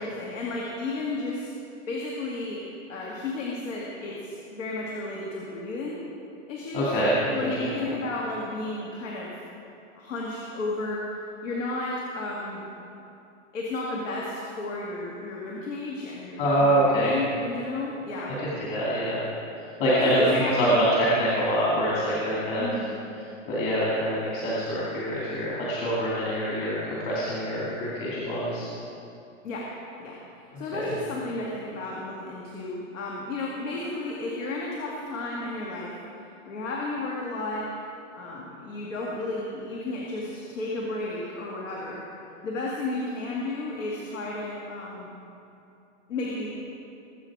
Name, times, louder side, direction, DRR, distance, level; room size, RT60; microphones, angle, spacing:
voice 1, 0.0-1.5 1.9-2.6 2.9-6.0 6.5-6.9 7.3-9.3 9.9-11.0 11.4-12.7 13.5-18.3 20.0-20.7 22.6-22.9 29.4-29.7 30.0-30.2 30.6-36.0 36.5-37.7 38.2-42.0 42.4-45.1 46.1-46.5, left 2 dB, 70° left, -3 dB, 2.4 m, -33 dB
voice 2, 6.7-7.9 16.4-17.2 18.7-19.2 19.8-20.2 20.6-22.7 23.5-28.7 30.5-30.9, equal, 30° left, -7 dB, 2.5 m, -25 dB
21.0 x 8.2 x 4.8 m, 2.7 s
supercardioid pair, 160°, 39 cm